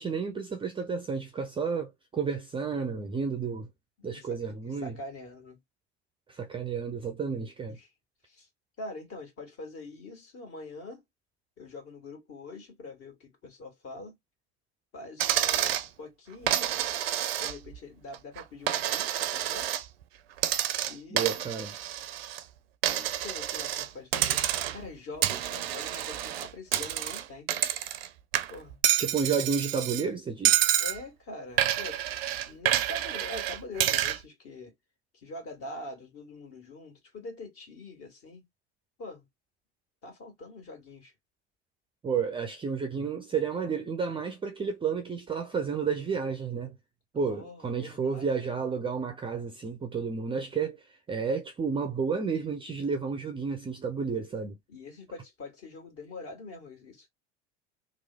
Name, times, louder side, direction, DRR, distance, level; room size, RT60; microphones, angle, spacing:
voice 1, 0.0-3.7 4.0-4.9 6.3-7.8 21.1-21.7 29.0-30.6 42.0-46.8 47.1-50.8 51.1-54.6, right 5 dB, 15° right, 0.5 m, -31 dB
voice 2, 4.0-5.6 7.7-7.9 8.3-8.5 8.8-11.0 11.6-14.2 14.9-16.7 17.4-19.7 20.9-21.3 22.8-24.4 24.7-27.5 28.5-28.8 30.8-34.7 35.1-38.5 39.0-39.3 40.0-41.1 47.3-48.6 54.7-57.1, left 2 dB, 45° left, 1.8 m, -44 dB
Coin (dropping), 15.2-15.9 16.5-17.8 18.1-19.8 20.4-22.4 22.8-23.9 24.1-24.9 25.2-28.1 28.3-30.0 30.4-31.0 31.6-34.2, right 12 dB, 60° right, 0.5 m, -28 dB
3.1 x 2.0 x 3.3 m
figure-of-eight pair, 70°, 34 cm